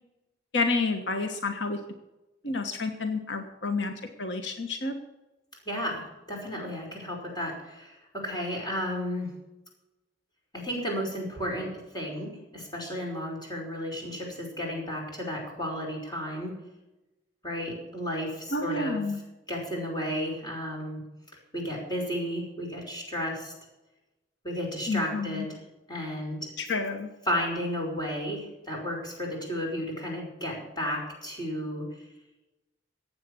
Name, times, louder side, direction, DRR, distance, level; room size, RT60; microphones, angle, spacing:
voice 1, 0.5-1.8 2.4-5.0 18.5-19.2 24.9-25.5 26.6-27.1, left 3 dB, 80° left, 6 dB, 1.4 m, -29 dB
voice 2, 5.7-9.3 10.5-16.5 17.4-19.0 19.5-21.0 21.5-23.5 24.4-25.6 25.9-26.5 27.3-31.9, equal, 25° left, -1 dB, 5.4 m, -33 dB
15.0 x 9.0 x 6.9 m, 0.99 s
head